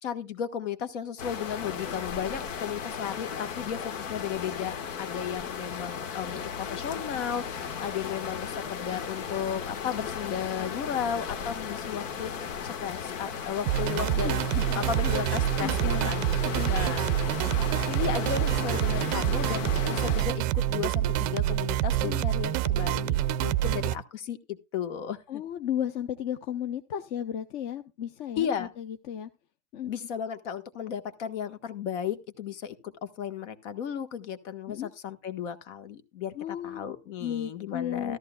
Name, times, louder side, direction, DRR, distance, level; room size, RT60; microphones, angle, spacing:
voice 1, 0.0-12.3 12.6-14.4 14.7-16.2 16.7-17.0 17.9-25.4 28.4-28.7 29.9-38.2, left 8 dB, 70° left, 1.5 m, -34 dB
sound 1, 1.2-20.3, left 7 dB, 85° left, 1.6 m, -35 dB
sound 2, 13.7-23.9, right 12 dB, 35° right, 0.5 m, -27 dB
voice 2, 14.2-14.8 15.6-16.1 16.4-16.7 22.0-22.3 25.3-29.3 29.7-29.9 34.7-34.9 36.3-36.9 37.2-38.2, left 10 dB, 35° left, 0.6 m, -34 dB
14.0 x 13.5 x 2.3 m
supercardioid pair, 165°, 37 cm